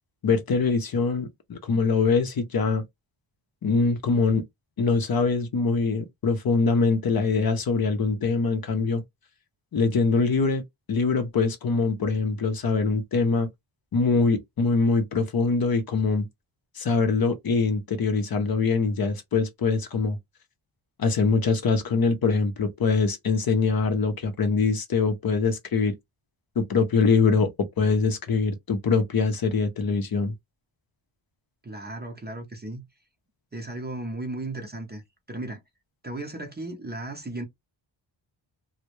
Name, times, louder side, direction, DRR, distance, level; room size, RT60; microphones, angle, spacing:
voice 1, 0.2-2.8 3.6-4.4 4.8-9.0 9.7-10.6 10.9-13.5 13.9-16.3 16.8-20.2 21.0-25.9 26.6-27.5 27.8-30.3, left 4 dB, 50° left, 0.6 m, -23 dB
voice 2, 31.6-32.8 33.5-35.0 35.3-35.6 36.0-37.5, right 2 dB, 20° right, 0.6 m, -35 dB
2.2 x 2.0 x 2.9 m
wide cardioid pair, 90°, 47 cm